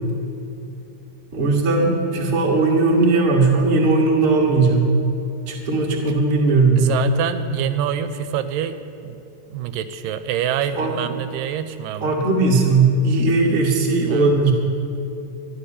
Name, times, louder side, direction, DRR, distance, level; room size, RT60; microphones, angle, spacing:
voice 1, 1.3-5.0 5.5-7.0 10.7-10.9 12.0-14.5, right 3 dB, 30° right, -3 dB, 0.9 m, -18 dB
voice 2, 6.8-9.2 9.5-12.2 14.1-14.3, right 10 dB, 80° right, 11 dB, 2.2 m, -26 dB
12.5 x 6.8 x 9.9 m, 2.8 s
omnidirectional pair, 4.0 m